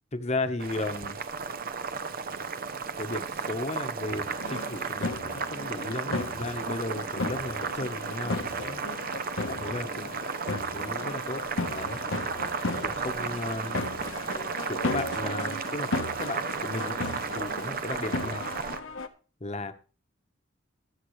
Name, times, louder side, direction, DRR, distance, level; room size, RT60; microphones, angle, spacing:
voice 1, 0.1-1.2 3.0-8.8 9.4-11.4 11.7-12.0 12.8-13.8 14.6-17.0 17.3-18.5 19.4-19.7, left 2 dB, 35° left, 8 dB, 1.1 m, -35 dB
Boiling, 0.6-18.8, right 5 dB, 50° right, 0.7 m, -34 dB
sound 1, 4.1-19.1, left 2 dB, 80° left, 1.2 m, -35 dB
22.0 x 7.5 x 3.2 m, 0.36 s
head